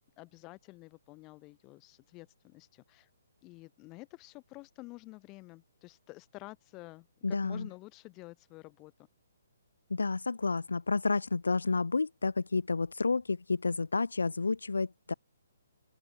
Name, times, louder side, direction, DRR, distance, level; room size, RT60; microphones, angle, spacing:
voice 1, 0.0-3.1 3.4-8.9, left 22 dB, 25° left, 2.5 m, -50 dB
voice 2, 7.2-7.7 9.9-15.1, left 4 dB, 80° left, 0.7 m, -30 dB
open air
figure-of-eight pair, 135°, 0 cm